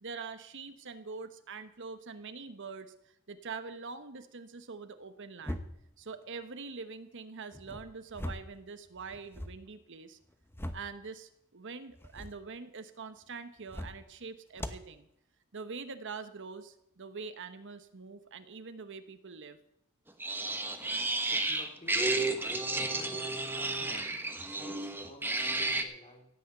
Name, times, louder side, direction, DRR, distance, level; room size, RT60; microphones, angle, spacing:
voice 1, 0.0-5.6 6.0-10.2 10.7-15.1 15.5-19.6, right 4 dB, 60° right, 10 dB, 1.0 m, -44 dB
sound 1, 5.4-6.0 7.5-8.6 8.9-9.6 10.2-11.0 11.9-12.4 13.6-14.1 14.5-14.9, left 1 dB, 10° left, 0.9 m, -41 dB
sound 2, 20.2-25.8, right 2 dB, 10° right, 1.2 m, -32 dB
voice 2, 21.1-22.2 22.7-23.3 23.5-26.3, left 1 dB, 30° left, 3 dB, 2.9 m, -52 dB
16.5 x 6.4 x 8.9 m, 0.78 s
head